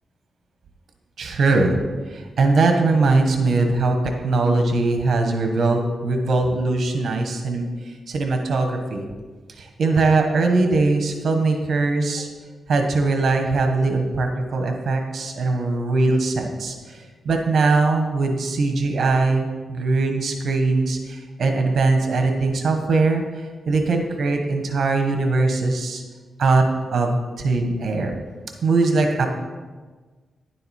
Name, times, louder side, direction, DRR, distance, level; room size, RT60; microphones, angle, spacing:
voice 1, 1.2-1.8 2.1-9.1 9.6-12.3 12.7-26.0 26.4-28.1 28.6-29.3, right 3 dB, 60° right, 4 dB, 1.2 m, -21 dB
10.5 x 7.8 x 4.3 m, 1.4 s
wide cardioid pair, 135°, 0 cm